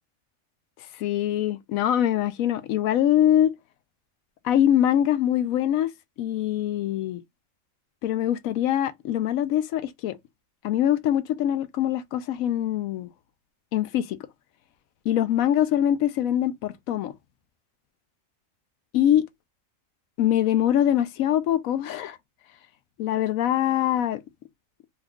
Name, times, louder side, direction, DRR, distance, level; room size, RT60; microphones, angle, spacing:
voice 1, 1.0-3.5 4.4-5.9 6.2-7.2 8.0-10.2 10.6-13.1 13.7-14.2 15.1-17.1 18.9-19.2 20.2-22.2 23.0-24.2, left 11 dB, 90° left, 1.0 m, -23 dB
3.0 x 2.4 x 3.4 m
omnidirectional pair, 1.4 m